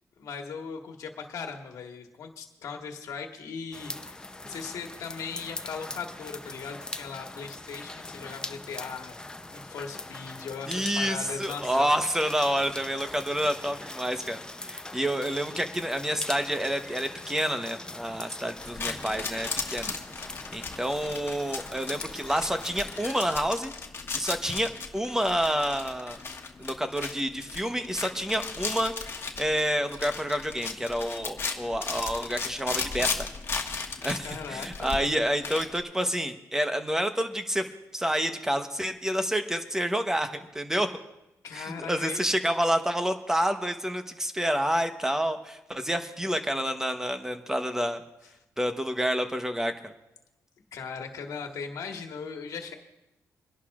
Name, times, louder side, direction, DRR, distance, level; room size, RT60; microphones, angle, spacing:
voice 1, 0.2-9.1 9.5-11.9 20.4-20.6 34.2-35.2 41.4-42.3 50.7-52.8, left 5 dB, 80° left, 3 dB, 1.5 m, -39 dB
sound 1, 3.7-23.5, left 2 dB, 15° left, 0.7 m, -42 dB
voice 2, 10.7-19.9 20.5-23.7 24.1-26.2 26.6-28.9 29.4-33.3 34.0-37.6 37.9-40.9 41.5-48.0 48.6-49.9, equal, 10° right, 7 dB, 1.0 m, -28 dB
sound 2, 18.6-35.8, left 4 dB, 40° left, 1.4 m, -36 dB
28.0 x 11.0 x 2.5 m, 0.93 s
cardioid pair, 100°, 6 cm